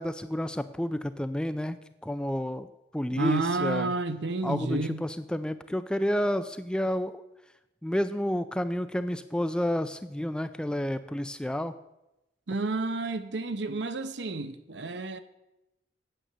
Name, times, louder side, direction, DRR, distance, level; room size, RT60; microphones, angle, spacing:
voice 1, 0.0-1.8 2.0-3.9 4.4-7.2 7.8-11.7, equal, 5° left, 0.3 m, -30 dB
voice 2, 3.1-5.0 12.5-15.2, right 3 dB, 70° right, 0.7 m, -30 dB
9.0 x 7.6 x 6.7 m
head